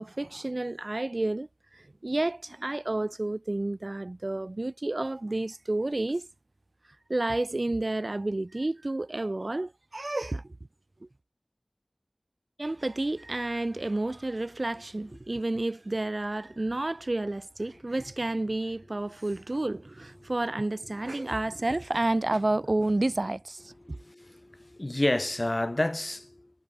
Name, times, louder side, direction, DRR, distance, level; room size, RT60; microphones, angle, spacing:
voice 1, 0.0-6.3 7.1-10.6 12.6-24.0, right 2 dB, 60° right, 1.6 m, -30 dB
voice 2, 23.8-26.5, left 1 dB, 40° left, 2.6 m, -30 dB
wide cardioid pair, 45°, 0 cm